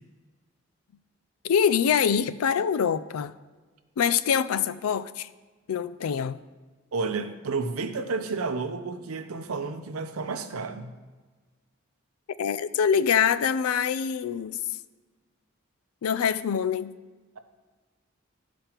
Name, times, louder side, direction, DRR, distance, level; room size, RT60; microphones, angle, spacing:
voice 1, 1.4-3.3 4.0-5.3 5.7-6.4 12.4-14.6 16.0-16.9, left 7 dB, 85° left, 15 dB, 0.4 m, -24 dB
voice 2, 6.9-11.0, right 4 dB, 85° right, 8 dB, 0.7 m, -31 dB
13.0 x 5.1 x 2.9 m, 1.3 s
head